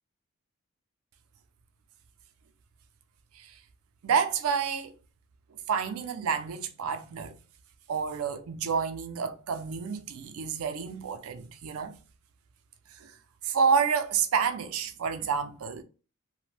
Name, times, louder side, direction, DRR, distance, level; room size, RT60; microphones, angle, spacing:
voice 1, 4.0-5.0 5.7-7.3 7.9-12.0 12.9-13.1 13.4-15.8, right 6 dB, 75° right, 0.4 m, -29 dB
2.5 x 2.1 x 3.2 m
head